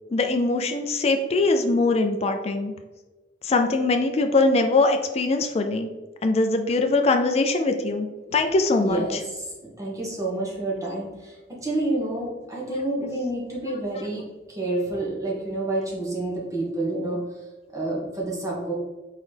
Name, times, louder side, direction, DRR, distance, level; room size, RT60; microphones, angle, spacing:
voice 1, 0.1-2.7 3.4-5.9 6.2-9.2, left 3 dB, 35° left, 5 dB, 0.4 m, -22 dB
voice 2, 8.8-14.2 14.5-17.2 17.7-18.7, right 2 dB, 20° right, -4 dB, 1.3 m, -29 dB
4.1 x 3.8 x 3.3 m, 1.2 s
head